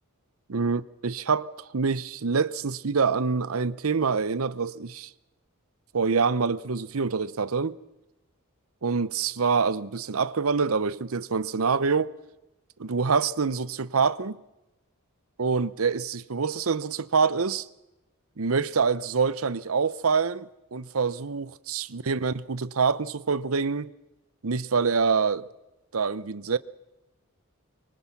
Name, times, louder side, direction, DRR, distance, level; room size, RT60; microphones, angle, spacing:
voice 1, 0.5-5.1 5.9-7.8 8.8-12.1 12.8-14.4 15.4-17.7 18.4-23.9 24.4-25.5 25.9-26.6, right 5 dB, 75° right, 0.8 m, -26 dB
24.5 x 24.0 x 5.9 m
head